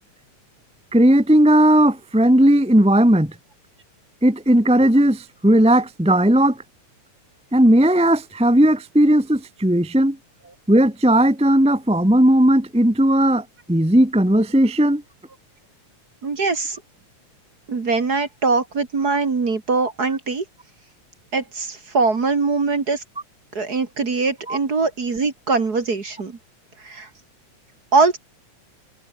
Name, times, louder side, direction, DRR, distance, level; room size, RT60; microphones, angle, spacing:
voice 1, 0.9-3.3 4.2-6.6 7.5-10.2 10.7-15.0 24.5-24.6, right 1 dB, 5° right, 1.2 m, -16 dB
voice 2, 16.2-16.8 17.7-20.4 21.3-23.0 23.5-26.4 26.8-27.1 27.9-28.2, right 4 dB, 35° right, 2.4 m, -22 dB
omnidirectional pair, 3.5 m